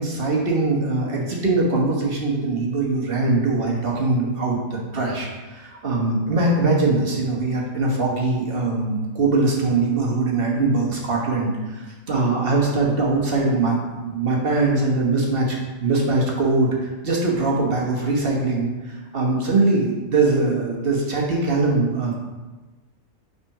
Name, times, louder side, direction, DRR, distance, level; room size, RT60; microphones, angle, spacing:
voice 1, 0.0-22.1, right 3 dB, 45° right, -2 dB, 1.3 m, -22 dB
5.8 x 4.1 x 4.8 m, 1.2 s
omnidirectional pair, 1.5 m